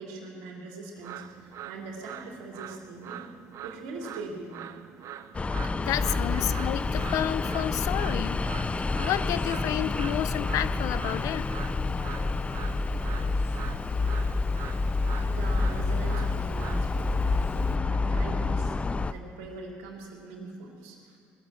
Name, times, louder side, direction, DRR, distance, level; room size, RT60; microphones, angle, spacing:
voice 1, 0.0-3.2 3.6-4.7 6.2-6.4 15.2-21.2, right 3 dB, 85° right, 0 dB, 2.7 m, -42 dB
sound 1, 1.0-19.2, right 10 dB, 60° right, 0.7 m, -45 dB
sound 2, 5.3-19.1, left 3 dB, 20° left, 0.5 m, -28 dB
voice 2, 5.8-8.5 9.0-11.5, left 12 dB, 70° left, 16 dB, 0.5 m, -30 dB
Speech, 5.8-17.8, left 4 dB, 45° left, 1.1 m, -49 dB
20.0 x 7.2 x 7.7 m, 2.3 s
supercardioid pair, 75°, 6 cm